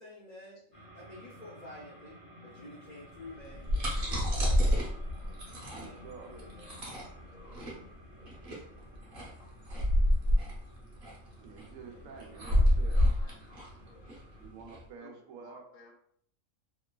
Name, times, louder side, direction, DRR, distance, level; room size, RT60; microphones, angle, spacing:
voice 1, 0.0-4.3 5.6-6.8 11.9-12.8, left 1 dB, 50° left, -5 dB, 0.5 m, -51 dB
sound 1, 0.7-14.5, left 1 dB, 10° right, 0.6 m, -55 dB
sound 2, 3.4-14.8, equal, 50° right, 0.9 m, -29 dB
voice 2, 5.7-6.5 8.8-10.2 11.3-13.2 14.4-15.8, right 5 dB, 80° right, 2 dB, 1.0 m, -51 dB
voice 3, 12.9-14.1 15.0-15.9, left 3 dB, 80° left, 0 dB, 1.1 m, -57 dB
2.9 x 2.4 x 2.2 m, 0.65 s
omnidirectional pair, 1.4 m